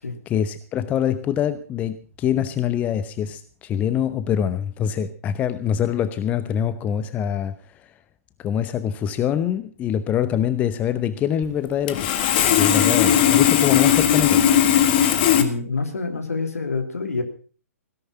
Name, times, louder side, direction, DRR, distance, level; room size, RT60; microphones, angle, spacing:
voice 1, 0.3-7.8 8.4-12.1 12.5-14.4, left 9 dB, 15° left, 12 dB, 0.8 m, -24 dB
Sawing, 11.4-11.5 11.9-15.4, left 10 dB, 35° left, 1.7 m, -17 dB
voice 2, 15.3-17.2, left 4 dB, 70° left, 7 dB, 2.9 m, -27 dB
17.0 x 11.0 x 5.6 m, 0.40 s
figure-of-eight pair, 125°, 8 cm